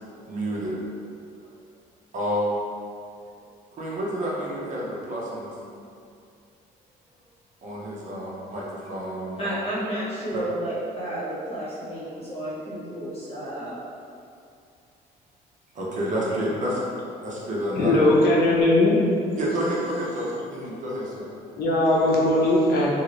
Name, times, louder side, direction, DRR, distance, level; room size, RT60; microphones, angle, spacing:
voice 1, 0.3-1.0 2.1-2.6 3.7-5.6 7.6-9.5 15.7-16.8 17.2-18.0 19.4-21.3, equal, 50° right, -5 dB, 0.8 m, -29 dB
voice 2, 9.4-13.8 16.3-16.5, right 1 dB, 35° left, -9 dB, 0.8 m, -31 dB
voice 3, 17.8-19.0 21.6-22.9, left 1 dB, 65° left, -5 dB, 0.8 m, -19 dB
2.7 x 2.5 x 3.1 m, 2.5 s
cardioid pair, 110°, 17 cm